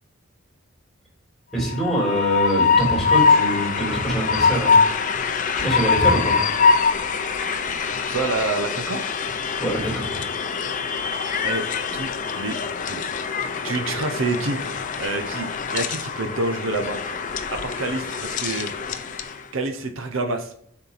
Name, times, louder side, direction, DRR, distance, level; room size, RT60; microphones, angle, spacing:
voice 1, 1.5-4.8 5.3-6.4 7.6-7.9 9.6-10.1, right 1 dB, ahead, -3 dB, 2.8 m, -25 dB
Train, 1.6-19.4, left 5 dB, 40° left, 0.5 m, -23 dB
voice 2, 8.1-9.0 11.4-11.6 11.9-12.6 12.9-13.0 13.3-14.6 15.0-17.0 17.5-18.7 19.5-20.5, right 3 dB, 65° right, 6 dB, 0.7 m, -27 dB
6.8 x 4.5 x 4.0 m, 0.66 s
head